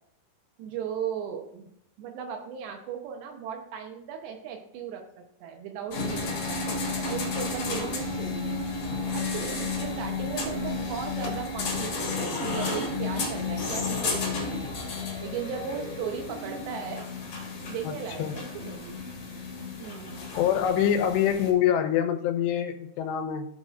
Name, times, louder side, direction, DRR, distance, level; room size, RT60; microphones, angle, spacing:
voice 1, 0.6-1.7 2.0-8.6 9.1-14.7 15.2-17.1 17.6-18.9 19.8-20.2, right 7 dB, 85° right, 3 dB, 2.9 m, -37 dB
sound 1, 5.9-21.5, left 3 dB, 50° left, 1.9 m, -32 dB
voice 2, 20.3-23.5, left 9 dB, 90° left, 6 dB, 2.8 m, -25 dB
14.5 x 5.3 x 2.5 m, 0.70 s
omnidirectional pair, 4.9 m